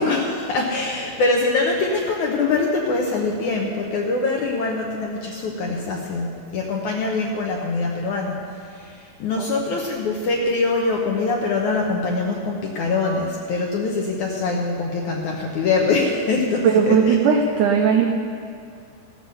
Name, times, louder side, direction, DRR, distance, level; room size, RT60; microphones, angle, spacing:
voice 1, 0.0-17.2, left 3 dB, 70° left, -1 dB, 1.8 m, -23 dB
voice 2, 16.6-18.1, right 6 dB, 85° right, 2 dB, 1.8 m, -17 dB
16.5 x 7.9 x 6.8 m, 2.3 s
omnidirectional pair, 4.6 m